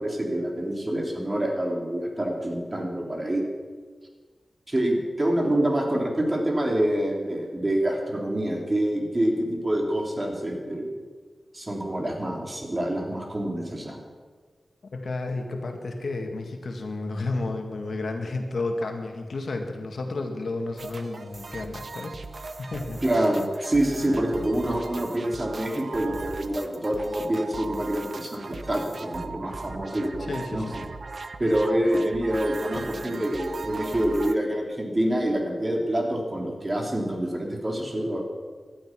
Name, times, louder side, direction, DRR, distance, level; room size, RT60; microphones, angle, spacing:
voice 1, 0.0-3.4 4.7-10.9 11.5-14.0 23.0-30.6 31.4-38.2, right 1 dB, 30° right, 1 dB, 3.4 m, -26 dB
voice 2, 14.9-22.2 22.6-23.0 30.3-30.7, left 2 dB, 75° left, 3 dB, 2.0 m, -31 dB
sound 1, 20.8-34.3, right 3 dB, 60° right, 0.9 m, -38 dB
17.5 x 12.0 x 6.1 m, 1.5 s
cardioid pair, 60°, 0 cm